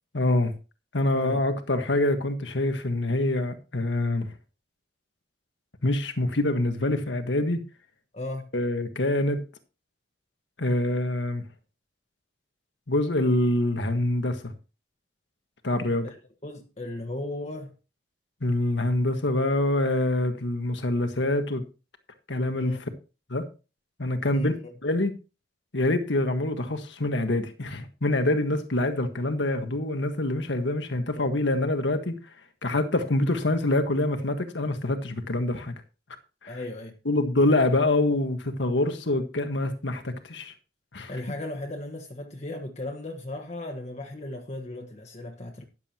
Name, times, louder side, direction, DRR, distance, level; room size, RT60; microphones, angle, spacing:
voice 1, 0.1-0.5 0.9-4.3 5.8-7.6 8.5-9.4 10.6-11.4 12.9-14.5 15.6-16.1 18.4-21.6 22.3-22.7 23.3-23.5 24.0-24.5 24.8-25.1 25.7-32.2 32.6-35.7 36.4-36.6 37.0-40.5 40.9-41.1, left 1 dB, 90° left, 1.6 m, -25 dB
voice 2, 8.1-8.5 16.0-16.1 16.4-17.7 22.6-22.8 24.3-24.7 31.1-31.3 36.5-37.0 41.1-45.6, left 2 dB, 40° left, 1.4 m, -36 dB
13.5 x 11.0 x 3.0 m
head